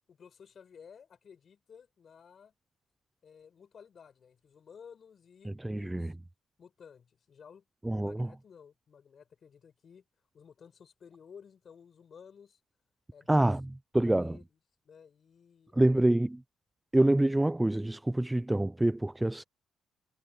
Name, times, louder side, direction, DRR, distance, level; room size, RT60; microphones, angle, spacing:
voice 1, 0.1-2.5 3.2-6.1 6.6-7.7 8.0-10.0 10.3-12.6 13.1-13.5 14.0-14.5 14.8-16.2, left 7 dB, 50° left, 4.9 m, -55 dB
voice 2, 5.4-6.1 7.8-8.3 13.3-13.6 13.9-14.4 15.7-16.4 16.9-19.4, right 1 dB, 10° right, 0.5 m, -26 dB
cardioid pair, 90°, 0 cm